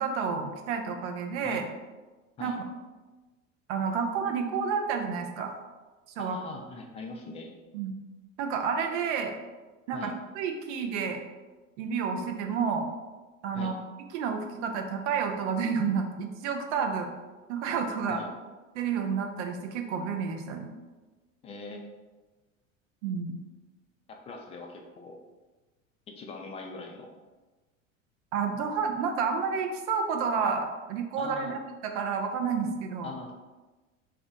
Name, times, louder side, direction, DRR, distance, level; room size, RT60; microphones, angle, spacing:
voice 1, 0.0-1.7 2.4-2.6 3.7-5.6 6.2-6.4 7.7-7.9 8.4-9.3 9.9-11.2 11.8-12.9 13.4-13.7 14.1-17.1 17.5-18.2 18.7-20.7 23.0-23.4 28.3-31.5 31.8-33.1, right 6 dB, 60° right, 4 dB, 0.6 m, -30 dB
voice 2, 6.2-7.5 9.9-10.2 13.5-13.7 18.1-18.3 21.4-21.8 24.3-25.2 26.2-27.1 31.2-31.6 33.0-33.3, left 3 dB, 15° left, 1 dB, 0.3 m, -41 dB
2.4 x 2.1 x 3.8 m, 1.2 s
hypercardioid pair, 75°, 40 cm